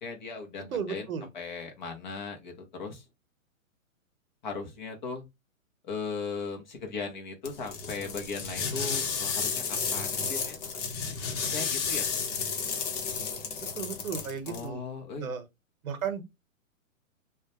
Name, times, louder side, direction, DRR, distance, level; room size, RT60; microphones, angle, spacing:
voice 1, 0.0-1.1 1.3-3.0 4.4-5.2 5.8-10.6 11.5-12.1 14.5-15.3, left 4 dB, 35° left, 0.6 m, -38 dB
voice 2, 0.7-1.3 13.7-14.8 15.2-15.5 15.8-16.2, right 7 dB, 80° right, 0.8 m, -34 dB
sound 1, 7.4-14.7, left 5 dB, 60° left, 0.8 m, -32 dB
2.2 x 2.1 x 2.9 m
hypercardioid pair, 150°, 41 cm